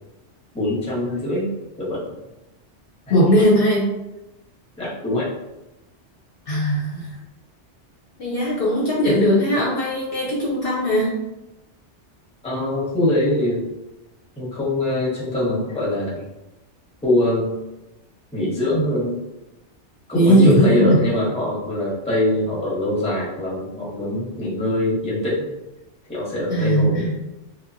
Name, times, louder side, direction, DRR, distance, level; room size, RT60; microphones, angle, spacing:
voice 1, 0.5-1.5 1.8-2.0 4.8-5.3 12.4-13.6 14.4-16.2 17.0-17.5 18.3-19.1 20.1-25.4 26.1-27.0, left 1 dB, 5° left, -6 dB, 0.6 m, -23 dB
voice 2, 3.1-3.9 6.5-7.2 8.2-11.2 20.1-21.0 26.5-27.1, equal, 60° left, -4 dB, 0.7 m, -18 dB
2.9 x 2.2 x 2.5 m, 0.96 s
omnidirectional pair, 1.2 m